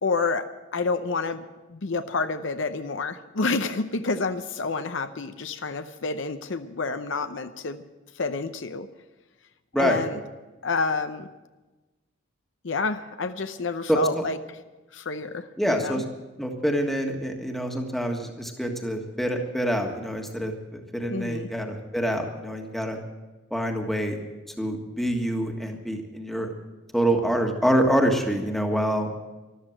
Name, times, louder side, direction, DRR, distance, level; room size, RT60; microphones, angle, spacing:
voice 1, 0.0-1.4 1.7-7.8 8.1-8.9 9.8-10.2 10.6-11.3 12.6-14.6 14.9-16.0 21.1-21.5, left 3 dB, 60° left, 9 dB, 0.7 m, -29 dB
voice 2, 13.9-14.2 15.6-16.0 16.4-23.0 23.5-24.2 24.6-26.5 26.9-29.1, equal, ahead, 2 dB, 1.6 m, -26 dB
13.5 x 12.5 x 7.7 m, 1.2 s
head